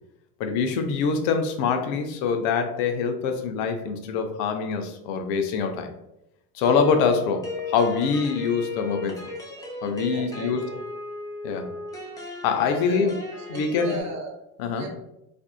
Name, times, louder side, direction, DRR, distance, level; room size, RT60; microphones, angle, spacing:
voice 1, 0.4-5.9 6.5-9.3 9.8-10.7 11.4-11.7 12.4-13.1 13.5-14.0 14.6-14.9, left 5 dB, 55° left, 5 dB, 0.6 m, -24 dB
sound 1, 6.6-14.0, left 3 dB, 10° left, 0.3 m, -36 dB
voice 2, 9.8-10.8 12.5-14.3 14.7-14.9, right 3 dB, 35° right, 3 dB, 0.8 m, -37 dB
2.6 x 2.5 x 2.3 m, 0.84 s
hypercardioid pair, 85°, 45 cm